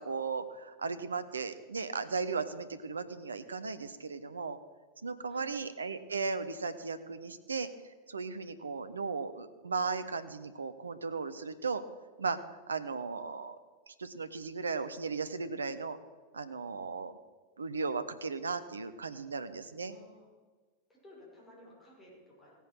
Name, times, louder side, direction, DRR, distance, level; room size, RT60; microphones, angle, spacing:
voice 1, 0.0-4.6 5.0-7.7 8.1-11.8 12.2-12.4 12.7-13.6 13.9-16.0 16.3-17.2 17.6-19.9, right 4 dB, 75° right, 12 dB, 0.9 m, -36 dB
voice 2, 19.9-20.3 20.9-22.5, left 1 dB, 15° left, -5 dB, 5.8 m, -56 dB
16.5 x 9.2 x 6.3 m, 1.4 s
figure-of-eight pair, 90°, 0 cm